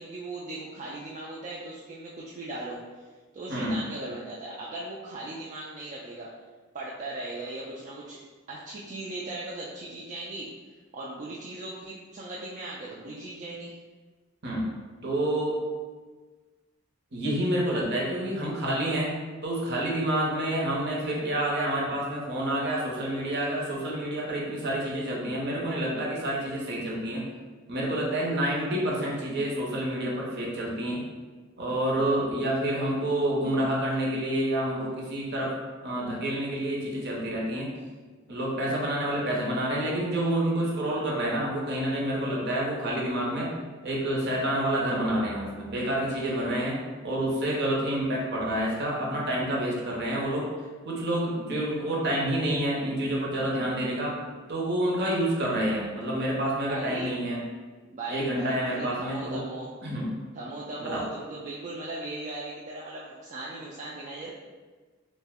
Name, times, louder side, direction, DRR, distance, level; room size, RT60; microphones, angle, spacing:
voice 1, 0.0-3.1 3.3-6.3 6.7-8.2 8.5-10.5 10.9-13.8 56.7-57.1 57.9-59.8 60.3-64.3, right 2 dB, 35° right, -5 dB, 0.3 m, -38 dB
voice 2, 3.5-3.8 14.4-14.7 15.0-15.6 17.1-19.1 19.4-27.2 27.7-31.0 31.6-35.5 35.8-37.7 38.3-43.5 43.8-46.8 47.0-50.5 50.9-54.1 54.5-57.4 58.1-59.4 59.8-60.1 60.8-61.0, right 1 dB, 55° right, -3 dB, 0.7 m, -28 dB
2.6 x 2.1 x 3.5 m, 1.4 s
head